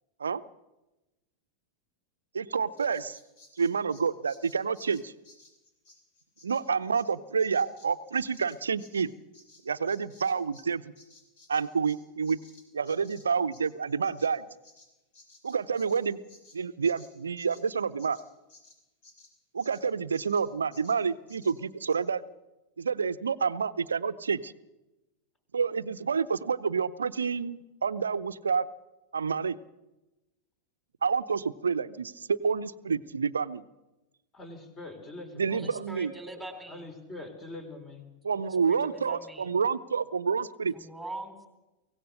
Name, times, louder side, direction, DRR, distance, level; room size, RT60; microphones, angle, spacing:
voice 1, 2.3-3.2 3.6-5.1 6.4-9.1 9.6-10.9 11.5-12.4 12.7-14.5 15.4-16.2 16.5-18.2 19.5-22.2 22.8-24.5 25.5-28.7 29.1-29.6 31.0-33.6 35.4-36.1 38.3-40.7, right 5 dB, 70° right, 13 dB, 0.7 m, -28 dB
Bird vocalization bird call bird song, 2.8-10.7 10.9-19.8 20.1-20.5 20.7-21.0 21.3-21.6 21.9-22.0, left 3 dB, 55° left, 5.1 m, -57 dB
voice 2, 34.3-35.7 36.7-38.1, left 2 dB, 20° left, 8 dB, 3.9 m, -43 dB
voice 3, 35.5-36.8 38.3-39.5 40.7-41.5, right 1 dB, ahead, 6 dB, 3.9 m, -43 dB
23.5 x 17.0 x 6.6 m, 1.0 s
figure-of-eight pair, 90°, 0 cm